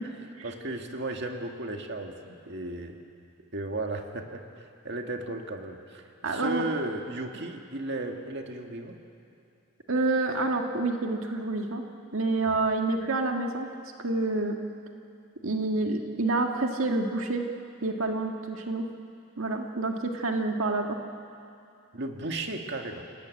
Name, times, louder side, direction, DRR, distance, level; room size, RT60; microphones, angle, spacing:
voice 1, 0.4-3.0 3.5-4.4 4.8-9.0 12.5-12.6 21.9-23.0, right 2 dB, 55° right, 3 dB, 1.9 m, -35 dB
voice 2, 6.2-6.6 9.9-11.8 12.1-13.7 14.0-14.6 15.4-17.5 17.8-18.9 19.4-21.0, right 2 dB, 90° right, 3 dB, 1.7 m, -28 dB
28.5 x 18.0 x 9.4 m, 2.5 s
head